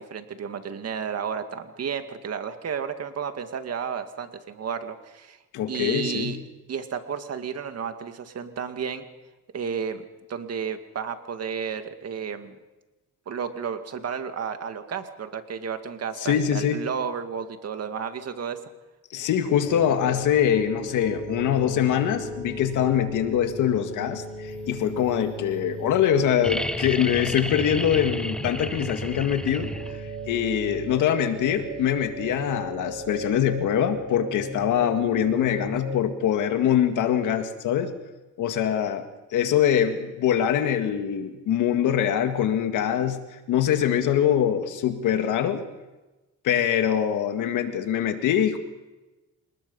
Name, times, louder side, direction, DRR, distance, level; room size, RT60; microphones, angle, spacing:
voice 1, 0.0-5.4 5.7-6.4 6.7-9.0 9.5-10.0 10.3-12.6 13.3-18.6, right 7 dB, 55° right, 7 dB, 2.2 m, -32 dB
voice 2, 5.5-6.4 16.2-16.8 19.1-29.7 30.3-37.9 38.4-39.1 39.3-43.2 43.5-45.6 46.4-48.6, left 9 dB, 85° left, 7 dB, 2.1 m, -23 dB
sound 1, 19.6-36.0, right 1 dB, 35° right, 5.9 m, -37 dB
sound 2, 26.4-30.2 31.9-32.0, left 1 dB, 5° left, 0.8 m, -32 dB
27.5 x 20.0 x 5.6 m, 1.1 s
cardioid pair, 90°, 30 cm